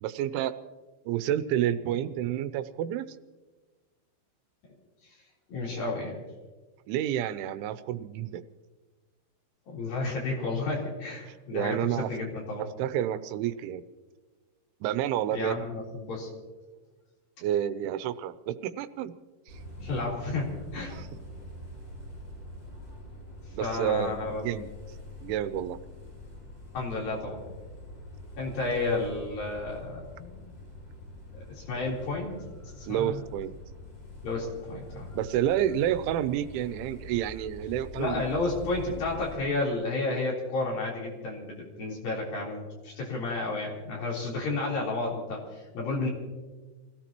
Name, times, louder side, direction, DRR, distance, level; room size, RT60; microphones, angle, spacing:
voice 1, 0.0-0.5 1.1-3.1 6.9-8.4 11.3-12.1 12.6-13.8 14.8-15.6 17.4-19.1 19.5-19.6 20.9-21.1 23.5-24.7 25.2-25.8 32.9-33.5 35.2-38.2, right 11 dB, 85° right, 12 dB, 3.1 m, -29 dB
voice 2, 5.5-6.2 9.7-12.7 15.3-16.3 19.8-21.0 23.6-24.4 26.7-27.4 28.4-30.5 31.3-32.4 32.8-33.2 34.2-35.1 37.9-46.1, left 3 dB, 50° left, -4 dB, 5.2 m, -32 dB
sound 1, 19.5-39.4, left 1 dB, 10° left, 6.4 m, -45 dB
28.0 x 17.5 x 3.0 m, 1.3 s
omnidirectional pair, 5.5 m